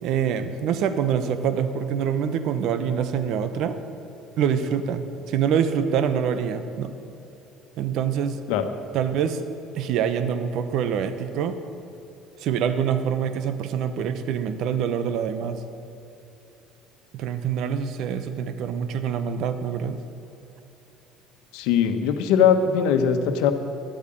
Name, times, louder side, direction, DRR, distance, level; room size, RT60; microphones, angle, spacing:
voice 1, 0.0-3.8 4.4-6.9 7.8-8.4 8.9-9.4 9.7-11.6 12.4-15.6 17.1-20.0, right 8 dB, 65° right, 10 dB, 1.0 m, -25 dB
voice 2, 21.5-23.5, left 7 dB, 80° left, 8 dB, 1.1 m, -20 dB
12.0 x 8.5 x 10.0 m, 2.9 s
supercardioid pair, 75°, 0 cm